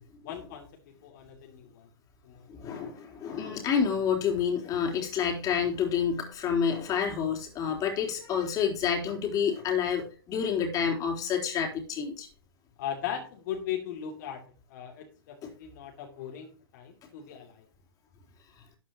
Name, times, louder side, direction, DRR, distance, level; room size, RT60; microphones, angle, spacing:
voice 1, 0.0-1.9 2.2-2.5 12.8-14.4 14.7-17.6, left 9 dB, 50° left, 1 dB, 2.8 m, -38 dB
voice 2, 2.5-12.3 15.4-15.5, left 7 dB, 30° left, 1 dB, 3.8 m, -29 dB
13.0 x 9.9 x 3.0 m, 0.38 s
hypercardioid pair, 115°, 12 cm